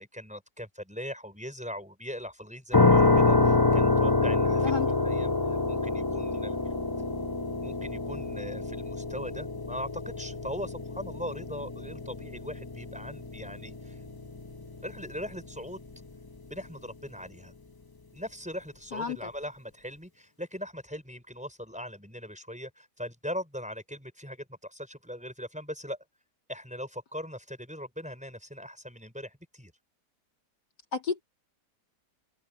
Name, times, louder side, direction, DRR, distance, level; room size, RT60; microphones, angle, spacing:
voice 1, 0.0-4.7 5.0-6.7 7.6-14.0 14.8-15.8 16.5-17.5 18.1-26.0 26.5-29.7, equal, 5° right, 5.3 m, -40 dB
sound 1, 2.7-15.6, left 3 dB, 15° left, 0.9 m, -27 dB
voice 2, 4.6-4.9 18.9-19.2 30.9-31.2, left 6 dB, 85° left, 3.4 m, -31 dB
omnidirectional pair, 1.8 m